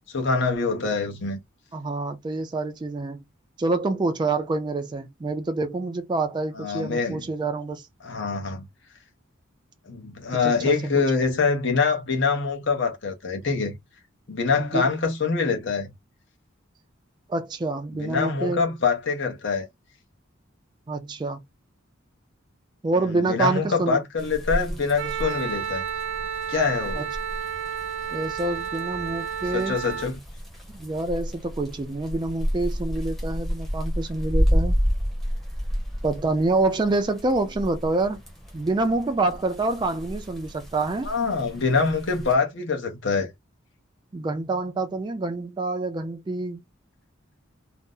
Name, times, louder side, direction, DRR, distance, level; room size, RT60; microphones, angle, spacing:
voice 1, 0.1-1.4 6.6-7.2 8.0-8.6 9.9-13.8 14.3-15.9 17.9-19.7 23.0-25.8 26.5-27.0 29.5-30.2 41.0-43.3, left 4 dB, 60° left, 0.8 m, -25 dB
voice 2, 1.7-3.2 3.6-7.9 10.4-11.0 14.6-14.9 17.3-18.7 20.9-21.4 22.8-24.0 27.0-27.1 28.1-29.8 30.7-34.8 36.0-38.2 38.5-41.1 44.1-46.6, right 2 dB, 20° right, 0.3 m, -27 dB
sound 1, 24.2-42.3, equal, ahead, 0.7 m, -31 dB
Wind instrument woodwind instrument, 25.0-30.1, right 8 dB, 70° right, 0.7 m, -31 dB
2.6 x 2.0 x 3.6 m
head